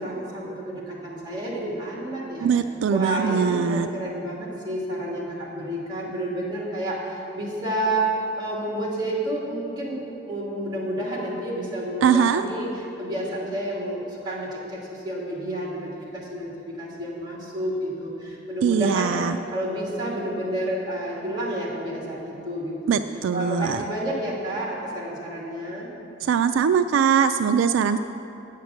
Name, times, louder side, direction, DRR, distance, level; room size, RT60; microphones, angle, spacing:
voice 1, 0.0-2.5 2.9-8.1 8.3-10.0 10.2-19.2 19.5-23.0 23.3-25.9, right 1 dB, 25° right, -4 dB, 2.6 m, -30 dB
voice 2, 2.4-3.9 12.0-12.4 18.6-19.4 22.9-23.8 26.2-28.0, right 7 dB, 75° right, 10 dB, 0.3 m, -21 dB
9.5 x 7.5 x 7.1 m, 2.8 s
head